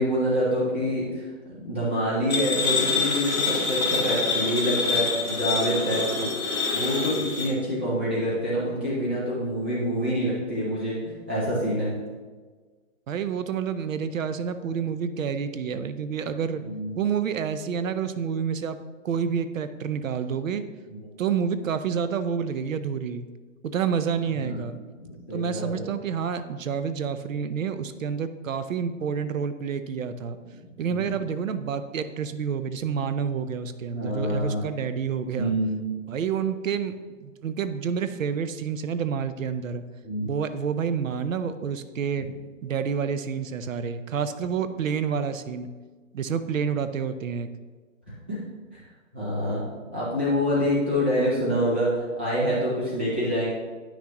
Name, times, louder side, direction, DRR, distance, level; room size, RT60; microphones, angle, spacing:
voice 1, 0.0-11.9 16.6-16.9 20.9-21.0 24.3-24.6 25.0-25.8 30.4-31.0 33.9-34.6 35.4-35.9 40.0-40.3 48.3-48.4 48.7-48.8 49.1-49.6 49.9-53.5, equal, 10° right, -9 dB, 0.6 m, -26 dB
sound 1, 2.3-7.5, left 4 dB, 30° left, 2.2 m, -26 dB
voice 2, 13.1-16.6 16.9-18.8 19.0-20.7 21.2-23.3 23.6-24.8 25.3-30.4 30.8-35.5 36.1-36.9 37.2-39.8 40.2-42.3 42.6-45.7 46.1-47.5, right 7 dB, 75° right, 11 dB, 0.7 m, -28 dB
10.0 x 6.0 x 3.0 m, 1.4 s
hypercardioid pair, 175°, 40 cm